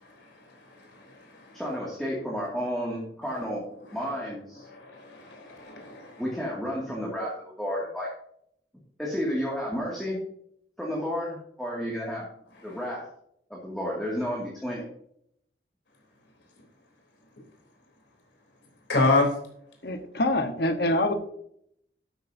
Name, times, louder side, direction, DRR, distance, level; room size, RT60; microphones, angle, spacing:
voice 1, 0.0-1.6 4.6-6.2 12.6-12.8 18.9-19.3, left 2 dB, 90° left, 3.5 m, -28 dB
voice 2, 1.5-3.6 3.9-4.7 6.2-8.1 9.0-10.2 10.8-12.3 12.6-13.0 13.5-14.9, equal, ahead, 2.2 m, -31 dB
voice 3, 19.8-21.1, left 1 dB, 60° left, 1.2 m, -25 dB
12.5 x 8.5 x 2.7 m
head